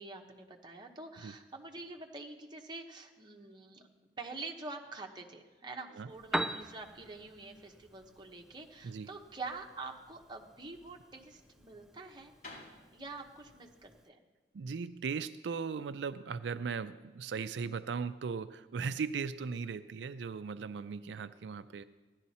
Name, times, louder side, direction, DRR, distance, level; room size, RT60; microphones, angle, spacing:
voice 1, 0.0-3.9 4.2-12.3 12.9-14.2, right 3 dB, 25° right, 2 dB, 1.1 m, -46 dB
Piano, 6.1-14.1, right 1 dB, 5° right, 0.4 m, -44 dB
sound 1, 12.3-16.2, left 2 dB, 50° left, 4.8 m, -56 dB
voice 2, 14.5-21.8, right 5 dB, 85° right, 12 dB, 0.4 m, -38 dB
16.0 x 11.5 x 4.2 m, 1.2 s
head